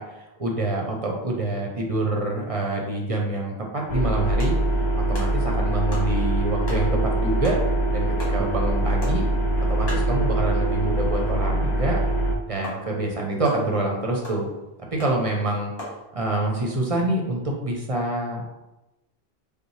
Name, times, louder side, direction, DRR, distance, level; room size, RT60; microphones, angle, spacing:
voice 1, 0.0-4.5 5.1-7.6 7.9-9.2 9.7-12.0 12.5-14.5 14.9-15.7 16.1-18.5, right 2 dB, 40° right, -1 dB, 0.6 m, -26 dB
sound 1, 3.9-12.4, right 1 dB, 55° left, 0.5 m, -23 dB
sound 2, 4.4-11.2 11.5-11.6 11.9-12.0 12.6-16.1, left 1 dB, 70° left, 1.5 m, -41 dB
5.3 x 2.2 x 3.1 m, 0.97 s
omnidirectional pair, 1.1 m